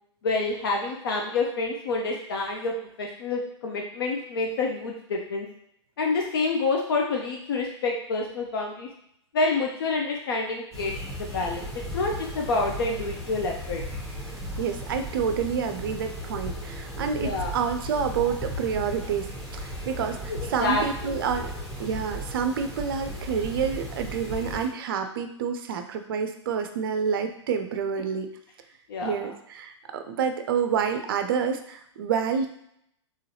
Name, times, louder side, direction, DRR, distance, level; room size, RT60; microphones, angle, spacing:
voice 1, 0.2-5.5 6.0-8.9 9.3-10.9 11.2-11.7 11.9-13.8 17.2-17.5 18.2-18.3 20.3-21.2 28.9-29.3, left 3 dB, 50° left, 0 dB, 0.5 m, -28 dB
sound 1, 10.7-24.7, equal, 5° left, 0.9 m, -36 dB
voice 2, 14.6-21.5 21.8-28.3 29.0-32.5, right 6 dB, 50° right, 7 dB, 0.4 m, -28 dB
3.8 x 3.1 x 2.7 m, 0.73 s
figure-of-eight pair, 110°, 15 cm